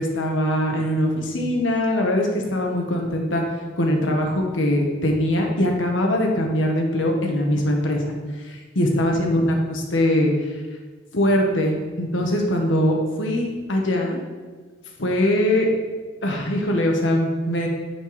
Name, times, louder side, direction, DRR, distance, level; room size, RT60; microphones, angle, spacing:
voice 1, 0.0-3.4 3.8-8.1 8.4-10.3 11.1-14.2 15.0-15.7 16.2-17.7, left 1 dB, 85° left, 1 dB, 1.3 m, -22 dB
9.0 x 4.5 x 4.8 m, 1.4 s
head